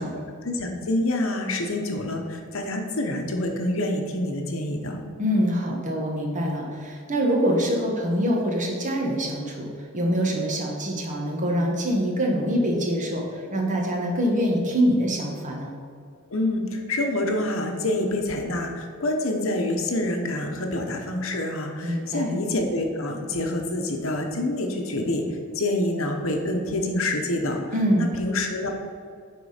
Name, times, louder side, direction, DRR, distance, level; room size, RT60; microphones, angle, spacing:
voice 1, 0.0-5.0 16.3-25.2 25.5-27.6 28.0-28.7, left 1 dB, 70° left, 3 dB, 1.0 m, -27 dB
voice 2, 5.2-9.7 9.9-15.7 21.8-22.3 27.7-28.1, equal, 35° right, -1 dB, 1.4 m, -24 dB
9.5 x 3.9 x 5.0 m, 2.2 s
head